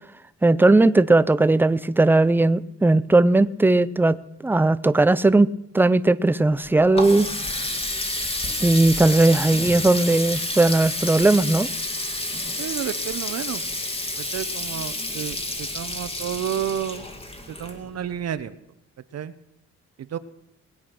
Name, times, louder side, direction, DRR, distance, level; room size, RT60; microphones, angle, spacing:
voice 1, 0.4-4.2 4.4-5.5 5.7-7.3 8.6-11.7, right 2 dB, 5° right, 0.5 m, -18 dB
Water tap faucet, 6.5-18.2, left 1 dB, 20° left, 2.1 m, -30 dB
voice 2, 12.6-13.6 14.2-17.0 17.5-18.6 19.1-19.3 20.0-20.2, right 10 dB, 55° right, 0.9 m, -31 dB
20.0 x 8.4 x 6.1 m
cardioid pair, 90°, 30 cm